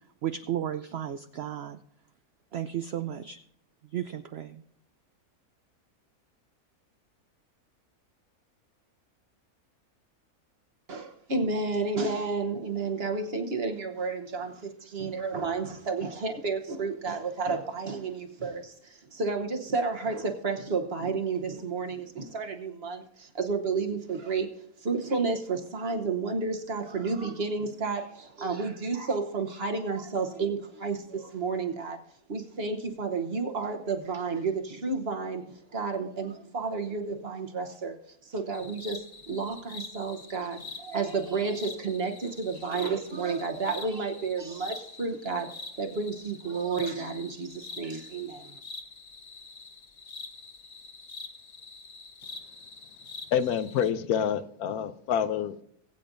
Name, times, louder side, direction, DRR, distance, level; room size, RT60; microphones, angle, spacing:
voice 1, 0.2-1.8 2.5-3.4 3.9-4.6, right 10 dB, 75° right, 10 dB, 0.6 m, -33 dB
voice 2, 10.9-32.0 32.3-38.0 38.2-48.5, right 4 dB, 45° right, 4 dB, 1.1 m, -31 dB
sound 1, 38.5-53.9, left 3 dB, 35° left, 0.7 m, -45 dB
voice 3, 53.3-55.6, left 8 dB, 75° left, 12 dB, 1.1 m, -27 dB
20.0 x 8.5 x 2.6 m, 0.69 s
omnidirectional pair, 1.6 m